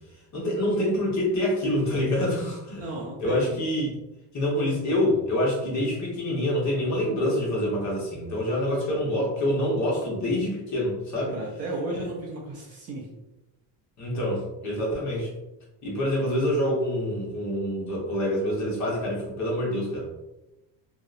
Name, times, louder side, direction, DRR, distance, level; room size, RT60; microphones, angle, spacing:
voice 1, 0.3-3.9 4.3-11.3 14.0-15.3 15.8-20.1, left 1 dB, 40° left, -3 dB, 0.9 m, -26 dB
voice 2, 2.8-3.6 11.3-13.1, right 2 dB, 35° right, -3 dB, 0.4 m, -34 dB
2.7 x 2.0 x 2.4 m, 0.96 s
cardioid pair, 145°, 45 cm